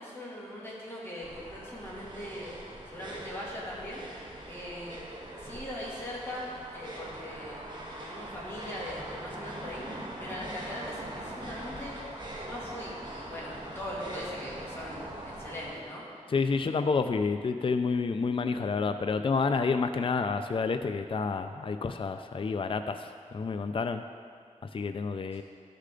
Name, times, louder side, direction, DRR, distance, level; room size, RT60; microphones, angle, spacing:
voice 1, 0.0-2.5 2.9-4.0 4.5-5.0 5.4-6.5 6.7-7.6 7.9-11.9 12.4-16.1, left 1 dB, 20° left, -7 dB, 2.7 m, -40 dB
sound 1, 1.2-15.7, right 1 dB, 35° right, 1.4 m, -42 dB
voice 2, 16.3-24.0 24.7-25.4, left 4 dB, 45° left, 8 dB, 0.4 m, -29 dB
12.5 x 6.6 x 3.8 m, 2.1 s
wide cardioid pair, 85°, 13 cm